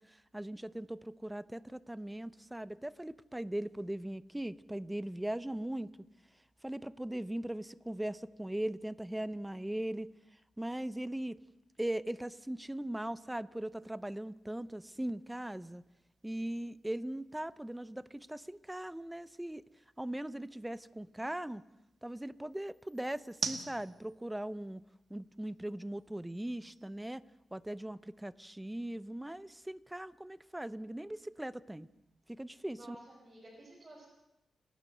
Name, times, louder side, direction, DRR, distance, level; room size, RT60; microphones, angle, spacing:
voice 1, 0.0-5.9 6.6-10.1 10.6-11.4 11.8-15.8 16.2-19.6 20.0-21.6 22.0-24.8 25.1-27.2 27.5-31.9 32.3-33.0, right 1 dB, 10° right, 17 dB, 0.6 m, -39 dB
sound 1, 13.6-27.8, right 5 dB, 60° right, 2.1 m, -50 dB
voice 2, 32.7-34.0, right 1 dB, 25° right, -5 dB, 5.7 m, -53 dB
29.5 x 11.5 x 7.8 m, 0.89 s
wide cardioid pair, 110°, 0 cm